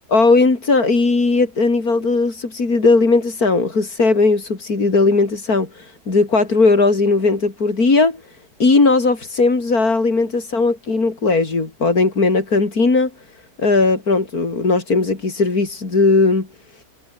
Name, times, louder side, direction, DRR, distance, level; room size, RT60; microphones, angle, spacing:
voice 1, 0.1-8.2 8.6-13.1 13.6-16.5, left 3 dB, 90° left, 4.3 m, -17 dB
omnidirectional pair, 1.5 m